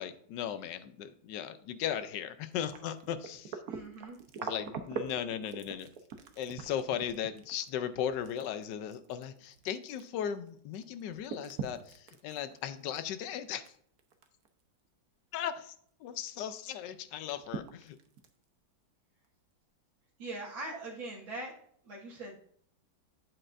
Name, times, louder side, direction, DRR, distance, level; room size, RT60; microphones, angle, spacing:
voice 1, 0.0-3.6 4.4-5.9 6.4-13.6 15.3-15.7 16.0-18.0, left 9 dB, 70° left, 11 dB, 1.2 m, -37 dB
sound 1, 2.5-10.5 10.7-13.7 14.0-14.5 14.8-14.9 16.2-16.3 16.7-16.8 17.3-18.4 19.2-19.3, right 6 dB, 60° right, 1.1 m, -43 dB
voice 2, 3.7-4.2 20.2-21.5 21.8-22.4, right 2 dB, 85° right, -5 dB, 2.4 m, -41 dB
8.6 x 8.6 x 2.6 m, 0.63 s
omnidirectional pair, 2.1 m